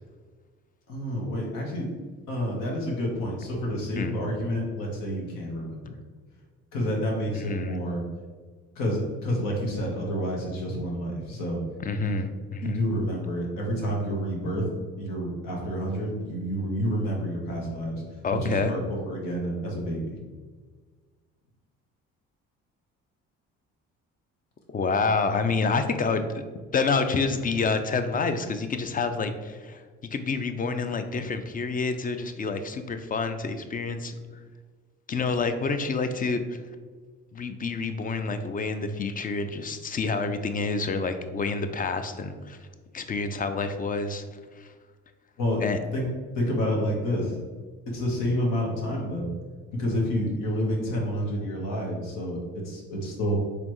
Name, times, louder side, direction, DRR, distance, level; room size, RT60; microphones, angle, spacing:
voice 1, 0.9-1.9 2.3-6.0 6.7-8.0 8.7-11.6 12.0-12.1 12.6-14.7 15.0-18.0 18.4-20.2 45.4-45.6 45.9-46.1 46.3-47.4 47.9-49.3 49.8-53.4, equal, 75° left, -2 dB, 1.3 m, -29 dB
voice 2, 7.3-7.8 11.8-12.8 18.2-18.7 24.7-26.4 26.7-29.8 30.1-34.1 35.1-36.6 37.3-42.6 42.9-44.2 44.6-44.7 45.6-45.8, left 4 dB, 25° left, 9 dB, 0.4 m, -28 dB
4.2 x 3.2 x 3.0 m, 1.5 s
supercardioid pair, 65°, 33 cm